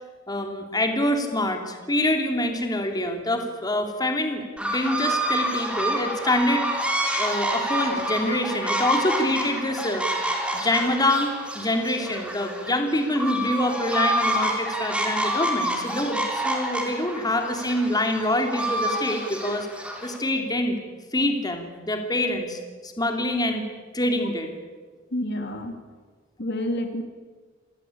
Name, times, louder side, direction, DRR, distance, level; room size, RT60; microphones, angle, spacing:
voice 1, 0.3-6.7 7.2-10.1 10.5-19.7 20.0-20.7 21.1-23.6 23.9-24.5, left 1 dB, 20° left, 5 dB, 3.0 m, -25 dB
sound 1, 4.6-20.2, right 1 dB, 5° right, 4.0 m, -28 dB
voice 2, 25.1-25.7 26.4-27.0, left 1 dB, 55° left, 6 dB, 2.5 m, -28 dB
27.0 x 19.5 x 8.6 m, 1.4 s
head